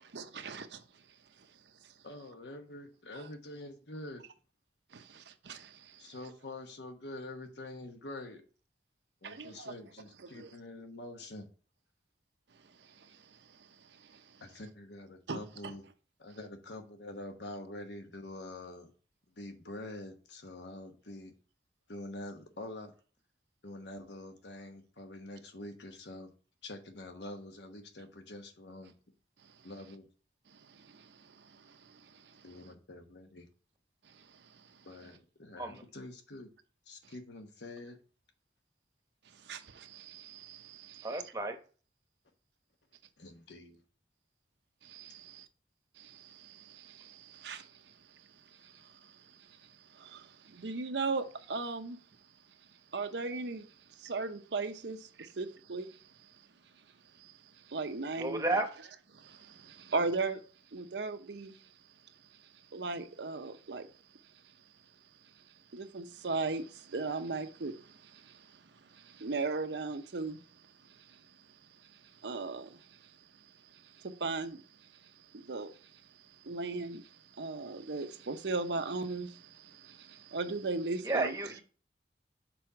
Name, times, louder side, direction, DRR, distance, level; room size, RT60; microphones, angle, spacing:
voice 1, 0.1-0.8 3.2-3.3 4.9-6.1 9.2-9.7 10.2-10.5 13.0-14.4 15.3-15.7 30.5-32.4 34.1-34.6 39.4-41.2 44.8-45.5 46.0-47.9 48.6-52.0 52.9-53.7 54.0-56.0 57.2-57.3 57.6-58.4 59.1-60.4 60.7-61.7 62.7-63.9 65.7-68.6 68.9-70.4 70.8-71.2 72.0-73.1 73.7-74.6 75.0-76.0 76.4-81.3, right 3 dB, 80° right, 0.7 m, -39 dB
voice 2, 2.0-4.2 6.0-8.4 9.2-11.5 14.4-15.8 16.2-18.9 19.4-21.3 21.9-22.9 23.6-26.3 26.6-28.9 29.6-30.1 32.4-33.5 34.8-36.5 36.9-38.0 43.2-43.8, left 1 dB, 75° left, 1.1 m, -46 dB
voice 3, 41.0-41.6 58.2-58.7 81.0-81.6, right 2 dB, 20° right, 0.8 m, -32 dB
6.2 x 4.3 x 4.7 m
head